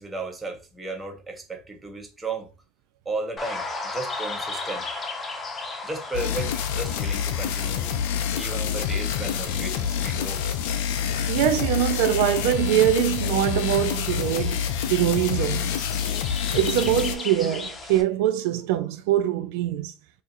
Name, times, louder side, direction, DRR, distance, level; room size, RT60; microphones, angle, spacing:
voice 1, 0.0-2.5 3.0-3.6 3.9-4.9 5.8-7.8 8.4-10.4, right 2 dB, 15° right, 1.0 m, -34 dB
sound 1, 3.4-18.0, left 3 dB, 25° left, 0.8 m, -37 dB
sound 2, 6.1-17.1, left 8 dB, 75° left, 0.4 m, -27 dB
voice 2, 11.3-15.7 16.5-19.9, right 11 dB, 75° right, 0.3 m, -23 dB
2.8 x 2.5 x 3.8 m
supercardioid pair, 105°, 0 cm